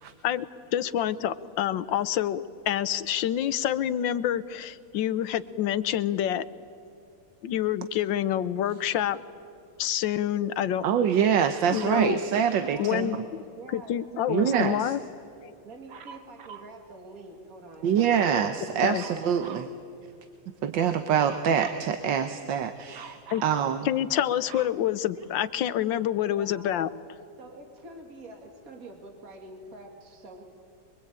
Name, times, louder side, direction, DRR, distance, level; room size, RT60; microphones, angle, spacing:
voice 1, 0.7-6.5 7.4-9.2 9.8-10.8 11.7-12.2 12.8-13.2 13.7-15.0 15.4-15.5 18.8-19.0 23.3-23.4 23.8-26.9, left 11 dB, 85° left, 15 dB, 1.5 m, -27 dB
voice 2, 10.8-13.1 14.3-14.9 17.8-19.7 20.6-23.9, right 8 dB, 90° right, 8 dB, 1.7 m, -25 dB
Dog, 11.7-12.1 15.9-16.8 18.9-19.7 21.2-21.9 22.9-23.6 24.1-25.6 26.4-26.5, right 6 dB, 65° right, 1.9 m, -46 dB
voice 3, 12.5-13.3 13.6-14.6 15.6-19.0 26.2-26.7 27.4-30.4, right 2 dB, 50° right, 3 dB, 2.8 m, -46 dB
24.0 x 23.5 x 8.8 m, 2.5 s
omnidirectional pair, 2.0 m